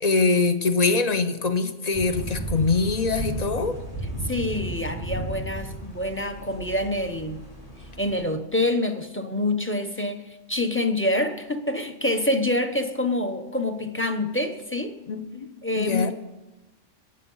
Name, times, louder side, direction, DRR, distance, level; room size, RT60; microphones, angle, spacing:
voice 1, 0.0-3.8 15.1-16.1, left 4 dB, 35° left, 9 dB, 0.9 m, -23 dB
sound 1, 1.9-8.2, right 1 dB, 65° left, 3.7 m, -34 dB
voice 2, 4.2-7.4 8.0-14.9 15.6-16.1, left 1 dB, 10° left, 8 dB, 0.9 m, -26 dB
21.0 x 8.3 x 5.6 m, 1.0 s
omnidirectional pair, 1.2 m